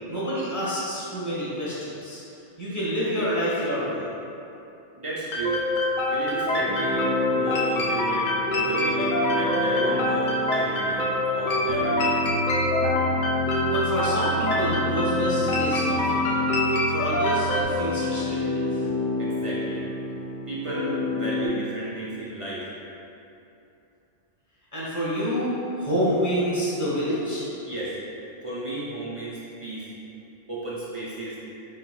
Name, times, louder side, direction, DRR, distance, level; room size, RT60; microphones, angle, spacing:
voice 1, 0.1-2.2 2.6-4.0 13.7-16.4 16.9-18.8 24.7-27.5, equal, 15° left, -9 dB, 1.0 m, -28 dB
voice 2, 4.9-5.6 6.1-12.2 19.2-19.8 20.5-22.6 27.6-28.0 28.4-29.9 30.5-31.4, right 2 dB, 50° right, -8 dB, 0.4 m, -33 dB
sound 1, 5.3-17.6, left 1 dB, 55° left, 0.5 m, -25 dB
sound 2, 6.6-21.5, left 2 dB, 85° left, 1.3 m, -29 dB
4.4 x 4.0 x 2.3 m, 2.8 s
omnidirectional pair, 1.3 m